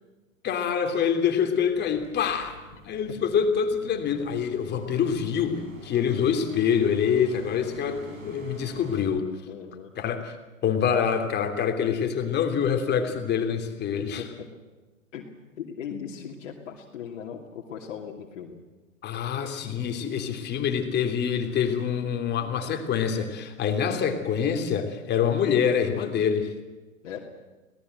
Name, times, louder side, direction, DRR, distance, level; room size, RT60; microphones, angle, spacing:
voice 1, 0.4-2.6 2.8-9.3 10.0-10.4 10.6-14.2 15.9-16.0 19.0-26.5, left 7 dB, 25° left, 5 dB, 3.1 m, -26 dB
sound 1, 1.7-9.0, right 2 dB, 75° right, 6.9 m, -45 dB
voice 2, 9.5-9.9 13.9-14.2 15.1-15.3 15.6-18.6 27.0-27.2, left 8 dB, 60° left, -1 dB, 2.7 m, -38 dB
26.0 x 18.5 x 7.9 m, 1.2 s
hypercardioid pair, 110°, 40 cm